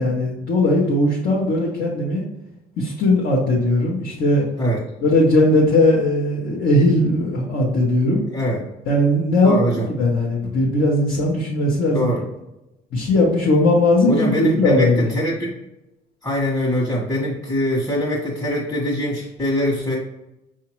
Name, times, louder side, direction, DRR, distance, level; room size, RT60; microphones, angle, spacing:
voice 1, 0.0-2.2 2.8-4.4 5.0-8.2 8.9-9.6 10.0-12.1 12.9-15.1, left 1 dB, 70° left, -5 dB, 1.2 m, -18 dB
voice 2, 9.4-9.9 10.4-10.5 11.9-12.2 14.1-15.6 16.2-20.0, equal, 20° left, -6 dB, 1.3 m, -23 dB
5.9 x 2.8 x 3.0 m, 0.93 s
cardioid pair, 110°, 17 cm